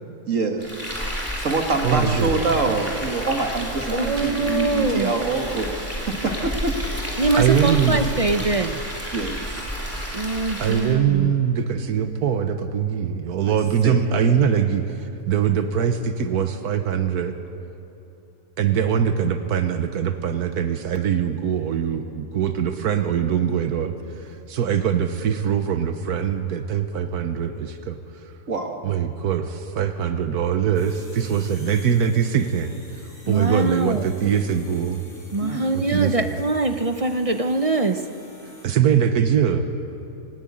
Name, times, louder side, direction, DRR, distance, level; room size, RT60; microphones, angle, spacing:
voice 1, 0.3-0.8 1.4-6.8 9.1-9.5 13.5-13.6 13.8-14.2 28.5-28.9 35.4-35.7, right 3 dB, 55° right, 4 dB, 2.0 m, -25 dB
Frying (food), 0.6-11.0, equal, 10° right, 3.4 m, -30 dB
voice 2, 1.8-2.4 7.4-8.0 10.6-17.3 18.6-28.0 28.8-32.7 33.3-35.0 35.7-36.4 38.6-39.7, right 8 dB, 80° right, 8 dB, 1.4 m, -22 dB
voice 3, 3.9-5.1 7.2-8.8 10.1-11.3 33.3-34.0 35.3-38.0, right 2 dB, 35° right, 8 dB, 0.5 m, -23 dB
sound 1, 30.7-38.7, left 1 dB, 35° left, 4.2 m, -49 dB
19.0 x 18.5 x 8.6 m, 3.0 s
omnidirectional pair, 1.6 m